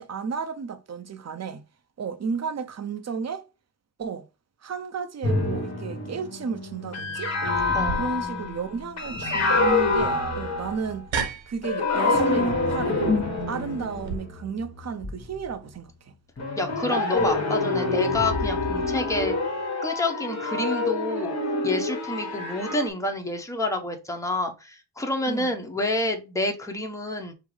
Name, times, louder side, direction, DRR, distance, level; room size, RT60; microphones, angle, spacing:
voice 1, 0.0-1.6 2.0-3.5 4.0-4.3 4.6-7.3 8.0-11.1 11.5-16.1 25.3-25.5, right 6 dB, 35° right, 0.6 m, -33 dB
sound 1, 5.2-11.1 11.6-15.6 16.4-22.9, left 3 dB, 35° left, 1.2 m, -27 dB
sound 2, 7.8-14.2, right 5 dB, 75° right, 1.0 m, -36 dB
voice 2, 16.6-19.4 19.8-21.3 21.6-27.3, left 2 dB, 5° left, 0.8 m, -28 dB
5.4 x 2.0 x 4.7 m
wide cardioid pair, 105°, 46 cm